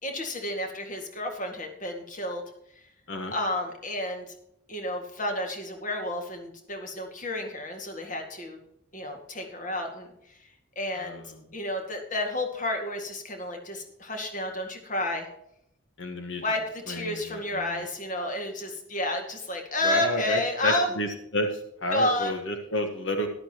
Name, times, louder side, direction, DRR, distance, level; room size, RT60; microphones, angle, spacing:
voice 1, 0.0-2.4 3.3-4.3 4.7-8.6 8.9-10.1 10.8-11.2 11.5-15.3 16.4-21.0 21.9-22.4, left 1 dB, 40° left, 3 dB, 2.0 m, -31 dB
voice 2, 10.9-11.3 16.0-16.4 16.9-17.8 19.8-23.3, left 1 dB, 70° left, 4 dB, 1.4 m, -31 dB
13.0 x 11.5 x 3.0 m, 0.75 s
head